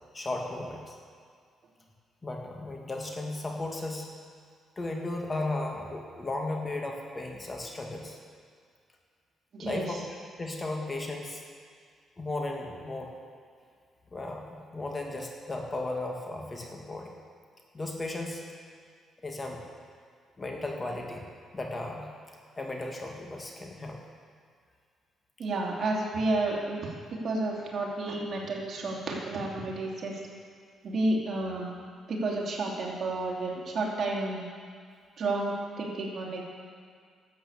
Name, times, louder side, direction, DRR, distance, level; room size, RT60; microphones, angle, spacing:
voice 1, 0.1-1.0 2.2-4.1 4.8-8.2 9.6-10.0 10.4-11.4 12.2-13.1 14.1-17.1 17.7-18.4 19.2-19.6 20.4-21.2 21.5-22.1 22.6-24.0, left 2 dB, 25° left, 1 dB, 1.9 m, -35 dB
voice 2, 9.5-10.0 25.4-30.2 30.8-31.7 32.1-34.4 35.2-36.4, right 2 dB, 55° right, -2 dB, 2.8 m, -31 dB
12.5 x 8.1 x 7.1 m, 2.1 s
cardioid pair, 90°, 0 cm